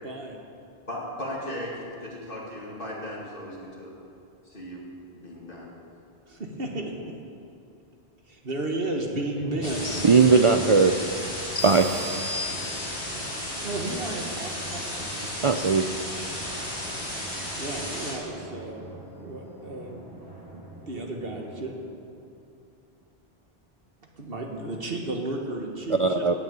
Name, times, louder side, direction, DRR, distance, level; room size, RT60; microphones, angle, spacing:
voice 1, 0.0-0.4 6.3-7.1 8.3-10.3 12.5-12.6 13.6-15.3 17.6-20.2 20.5-21.7 22.0-22.1 24.2-26.4, right 2 dB, 65° right, 1 dB, 1.8 m, -33 dB
voice 2, 0.9-3.9 4.4-4.8 5.1-5.7, left 1 dB, 60° left, -4 dB, 2.5 m, -37 dB
Drum, 9.3-22.4, right 2 dB, 85° right, 4.7 m, -44 dB
sound 1, 9.6-18.1, left 1 dB, 90° left, 4.6 m, -34 dB
voice 3, 9.9-10.9 11.6-11.9 15.4-15.9 26.0-26.4, right 4 dB, 50° right, 7 dB, 0.4 m, -19 dB
sound 2, 11.6-13.3, left 3 dB, 35° left, 1.3 m, -35 dB
16.0 x 6.7 x 8.8 m, 2.6 s
omnidirectional pair, 1.1 m